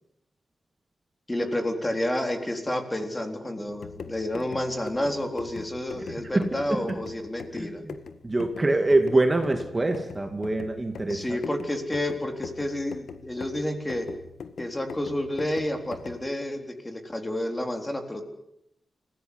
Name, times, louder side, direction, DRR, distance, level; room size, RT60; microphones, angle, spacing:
voice 1, 1.3-7.8 11.1-14.1 14.6-18.2, left 1 dB, 15° left, 5 dB, 3.8 m, -30 dB
sound 1, 3.7-16.3, left 6 dB, 80° left, 1.8 m, -42 dB
voice 2, 7.5-8.0 8.2-11.4, right 2 dB, 20° right, 5 dB, 2.3 m, -24 dB
29.0 x 16.5 x 9.8 m, 0.81 s
wide cardioid pair, 135°, 0 cm